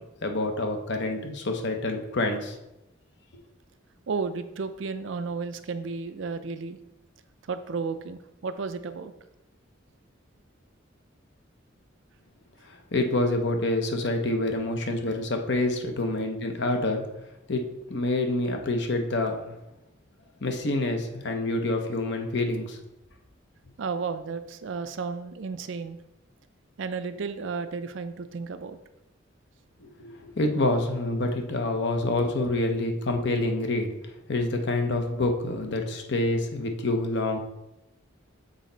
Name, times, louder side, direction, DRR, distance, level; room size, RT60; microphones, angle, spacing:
voice 1, 0.2-2.6 12.6-17.1 17.5-19.6 20.4-22.8 29.8-37.4, left 2 dB, 60° left, 4 dB, 0.8 m, -27 dB
voice 2, 4.1-6.8 7.5-9.1 23.8-26.0 26.8-28.8, right 4 dB, 65° right, 10 dB, 0.4 m, -33 dB
6.5 x 4.2 x 3.9 m, 0.92 s
head